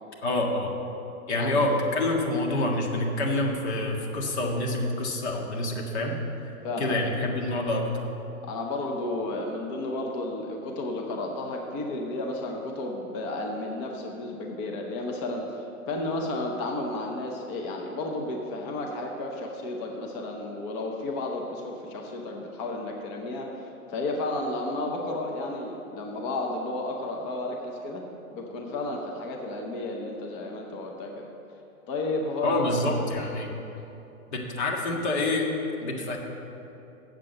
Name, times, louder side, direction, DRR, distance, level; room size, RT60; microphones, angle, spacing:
voice 1, 0.2-0.7 1.3-6.1 6.8-7.9 32.4-33.5 34.3-35.5 35.8-36.2, left 2 dB, 50° left, 0 dB, 1.8 m, -27 dB
voice 2, 1.3-1.7 6.6-7.0 8.4-28.0 28.3-31.3 31.9-33.1, left 2 dB, 20° left, 1 dB, 0.7 m, -32 dB
7.5 x 7.5 x 7.7 m, 2.9 s
hypercardioid pair, 150°, 43 cm